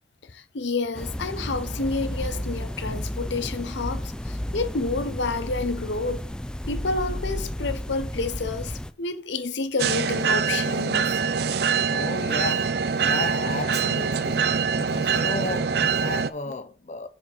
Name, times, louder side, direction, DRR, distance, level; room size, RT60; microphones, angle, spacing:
voice 1, 0.2-6.2 6.7-11.1, left 3 dB, 75° left, 0.8 m, -29 dB
sound 1, 0.9-8.9, left 1 dB, 5° left, 0.3 m, -32 dB
sound 2, 9.8-16.3, right 6 dB, 60° right, 0.4 m, -24 dB
voice 2, 11.8-17.1, left 3 dB, 40° left, 0.6 m, -34 dB
7.7 x 4.2 x 4.9 m
head